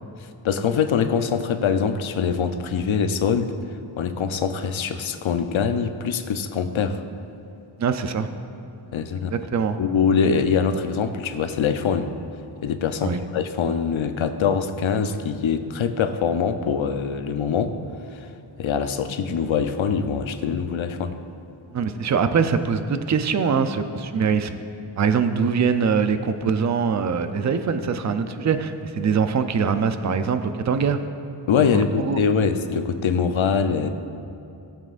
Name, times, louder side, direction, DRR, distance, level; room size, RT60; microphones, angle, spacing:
voice 1, 0.4-3.5 4.0-7.0 8.9-9.3 9.8-12.1 12.6-17.8 18.1-18.2 18.6-21.2 31.5-33.9, left 6 dB, 80° left, 8 dB, 0.7 m, -23 dB
voice 2, 7.8-8.3 9.3-9.8 13.0-13.2 21.7-24.6 25.0-31.0 31.7-32.2, right 6 dB, 40° right, 9 dB, 0.5 m, -23 dB
18.5 x 7.4 x 2.5 m, 2.6 s
wide cardioid pair, 105°, 47 cm